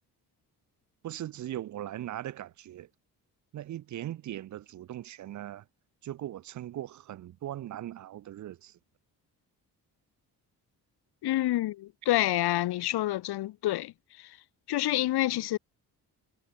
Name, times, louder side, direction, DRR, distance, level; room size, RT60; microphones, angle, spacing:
voice 1, 1.0-2.9 3.5-5.6 6.0-8.8, right 12 dB, 50° right, 0.6 m, -39 dB
voice 2, 11.2-13.9 14.2-14.3 14.7-15.6, left 15 dB, 85° left, 1.0 m, -28 dB
cardioid pair, 170°, 38 cm